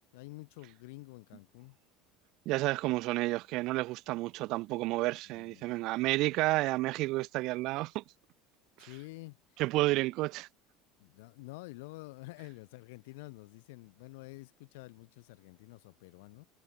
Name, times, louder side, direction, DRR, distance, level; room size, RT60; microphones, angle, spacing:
voice 1, 0.1-1.8 5.3-5.8 6.2-6.5 8.8-9.4 9.9-10.0 11.0-16.5, left 24 dB, 85° left, 1.6 m, -49 dB
voice 2, 2.5-8.0 8.8-8.9 9.6-10.5, right 20 dB, 50° right, 0.3 m, -31 dB
cardioid pair, 175°, 0 cm